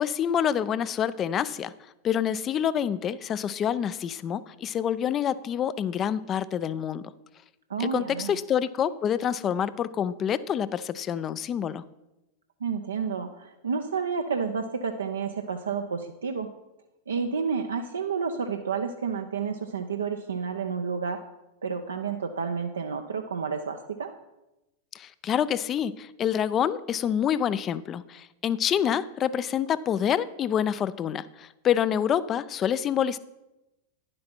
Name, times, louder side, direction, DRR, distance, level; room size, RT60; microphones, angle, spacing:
voice 1, 0.0-1.7 2.0-7.1 7.8-11.8 24.9-33.2, left 9 dB, 30° left, 17 dB, 0.4 m, -27 dB
voice 2, 7.7-8.4 12.6-16.5 17.1-21.2 21.6-24.1, right 5 dB, 70° right, 5 dB, 0.5 m, -30 dB
10.5 x 7.7 x 4.3 m, 0.96 s
figure-of-eight pair, 90°, 0 cm